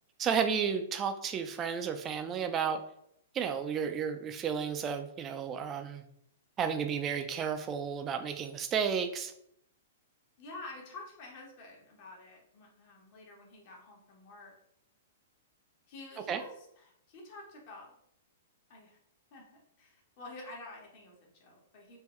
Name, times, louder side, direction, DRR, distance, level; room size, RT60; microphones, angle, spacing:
voice 1, 0.2-2.8 3.3-6.0 6.6-9.3 16.3-16.4, right 7 dB, 25° right, 8 dB, 0.4 m, -32 dB
voice 2, 10.4-14.5 15.9-17.9 18.7-19.0 19.3-22.0, left 2 dB, 50° left, -1 dB, 1.1 m, -49 dB
3.6 x 2.2 x 3.1 m, 0.72 s
hypercardioid pair, 125°, 0 cm